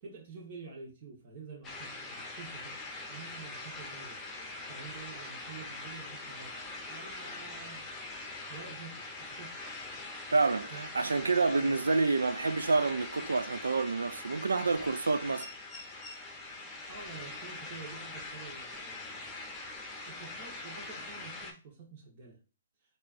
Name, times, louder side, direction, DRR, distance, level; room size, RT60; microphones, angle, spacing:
voice 1, 0.0-2.8 3.1-4.2 4.7-6.6 6.9-9.6 10.7-11.2 16.8-19.2 20.1-22.4, right 5 dB, 45° right, 1.3 m, -49 dB
sound 1, 1.6-21.5, left 2 dB, 15° left, 0.9 m, -43 dB
voice 2, 10.3-15.5, right 3 dB, 85° right, 0.3 m, -28 dB
4.4 x 2.8 x 2.6 m
hypercardioid pair, 130°, 0 cm